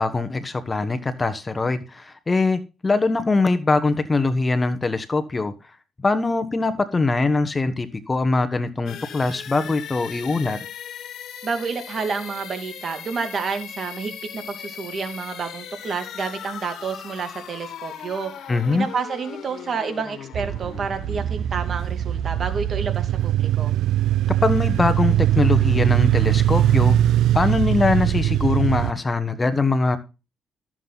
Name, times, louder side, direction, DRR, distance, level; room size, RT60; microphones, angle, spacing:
voice 1, 0.0-5.5 6.0-10.6 18.5-18.9 24.4-27.0 27.3-30.0, left 3 dB, 25° left, 1.2 m, -22 dB
sound 1, 8.9-22.6, left 9 dB, 75° left, 1.6 m, -39 dB
voice 2, 11.4-23.7, right 5 dB, 50° right, 2.6 m, -29 dB
sound 2, 20.3-28.9, right 12 dB, 80° right, 0.5 m, -21 dB
13.5 x 7.5 x 4.0 m
cardioid pair, 90°, 0 cm